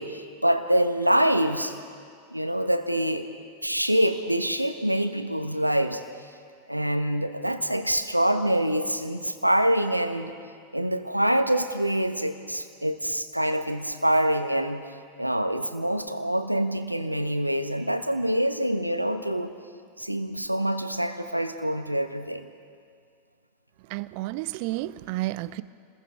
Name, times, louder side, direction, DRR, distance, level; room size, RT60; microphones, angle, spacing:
voice 1, 0.0-1.7 2.3-3.3 3.6-6.0 6.7-10.3 10.7-14.8 15.2-19.5 20.0-22.5, right 1 dB, 90° right, 1.2 m, -25 dB
voice 2, 23.9-25.6, right 17 dB, 45° right, 0.6 m, -31 dB
29.5 x 21.0 x 4.8 m
figure-of-eight pair, 90°, 0 cm